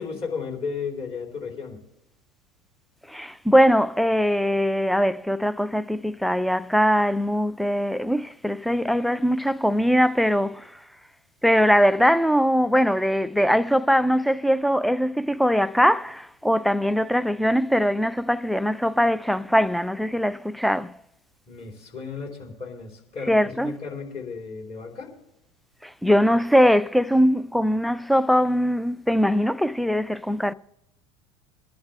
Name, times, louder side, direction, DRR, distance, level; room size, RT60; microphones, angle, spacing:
voice 1, 0.0-1.8 21.5-25.1, left 5 dB, 40° left, 4.4 m, -34 dB
voice 2, 3.1-10.8 11.4-21.0 23.3-23.7 25.8-30.5, equal, ahead, 0.4 m, -21 dB
22.0 x 11.5 x 3.5 m
hypercardioid pair, 80°, 16 cm